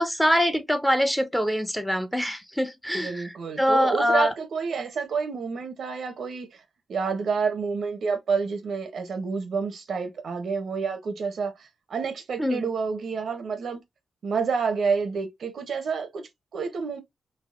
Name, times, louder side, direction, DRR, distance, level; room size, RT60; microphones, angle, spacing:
voice 1, 0.0-3.2 3.6-4.3 12.4-12.6, equal, 5° left, 0.4 m, -24 dB
voice 2, 2.9-6.6 6.9-13.8 14.2-17.0, right 5 dB, 70° right, 0.7 m, -29 dB
3.4 x 2.0 x 2.4 m
wide cardioid pair, 125°, 0 cm